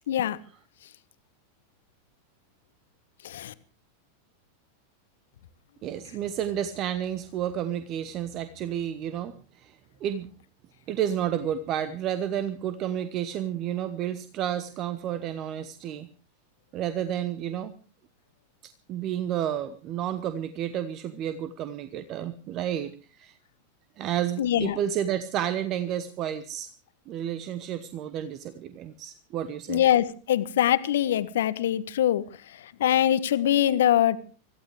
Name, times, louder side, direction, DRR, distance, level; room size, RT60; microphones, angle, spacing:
voice 1, 0.1-0.4 3.2-3.5 24.4-24.8 29.7-32.2 32.6-34.2, left 11 dB, 60° left, 15 dB, 1.0 m, -23 dB
voice 2, 5.8-10.3 10.9-16.1 16.7-17.7 18.9-23.4 24.0-26.7 27.1-29.8, right 10 dB, 35° right, 13 dB, 1.0 m, -31 dB
25.5 x 15.0 x 3.3 m, 0.36 s
figure-of-eight pair, 90°, 0 cm